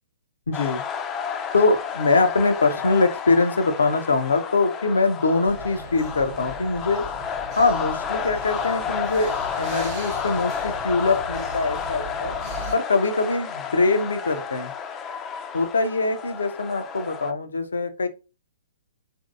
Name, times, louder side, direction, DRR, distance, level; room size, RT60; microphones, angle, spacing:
voice 1, 0.5-0.8 1.5-7.0 7.6-12.3 12.7-14.7 15.5-18.1, left 3 dB, 75° left, 8 dB, 0.5 m, -23 dB
sound 1, 0.5-17.3, left 7 dB, 20° left, 0.4 m, -31 dB
sound 2, 5.5-12.8, right 3 dB, 30° right, 0.8 m, -39 dB
3.1 x 2.6 x 2.5 m, 0.31 s
figure-of-eight pair, 125°, 0 cm